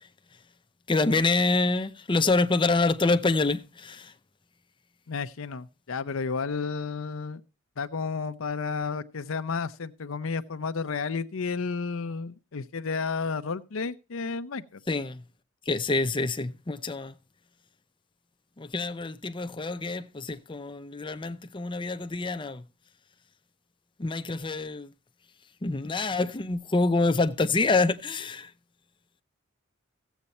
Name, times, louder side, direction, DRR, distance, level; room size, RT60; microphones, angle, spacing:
voice 1, 0.9-4.1 14.9-15.2 15.7-17.1 18.6-22.6 24.0-24.9 25.6-28.5, left 3 dB, 25° left, 0.6 m, -26 dB
voice 2, 5.1-7.4 7.8-14.8, left 5 dB, 80° left, 0.6 m, -32 dB
15.5 x 8.1 x 4.2 m
head